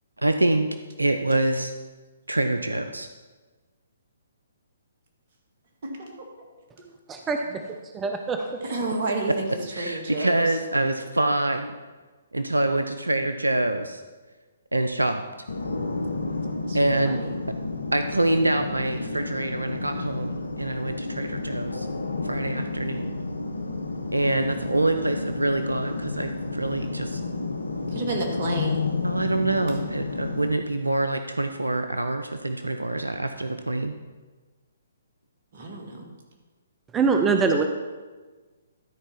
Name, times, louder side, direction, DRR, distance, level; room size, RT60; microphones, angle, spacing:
voice 1, 0.2-0.7 1.0-1.7 2.3-3.1 9.7-11.7 12.3-14.0 14.7-15.2 16.7-17.2 17.9-21.9 22.2-23.1 24.1-27.2 29.0-33.9, right 2 dB, 90° right, 8 dB, 0.5 m, -25 dB
voice 2, 5.8-6.3 7.5-7.6 8.6-9.5 9.8-10.5 16.1-16.8 17.0-17.3 27.9-28.8 35.5-36.1, right 2 dB, 50° right, 2 dB, 2.0 m, -31 dB
voice 3, 7.1-7.4 7.9-8.5 36.9-37.6, right 5 dB, 15° right, 4 dB, 0.6 m, -23 dB
sound 1, 15.5-30.5, left 3 dB, 80° left, 0.9 m, -31 dB
12.5 x 4.5 x 5.9 m, 1.3 s
figure-of-eight pair, 130°, 0 cm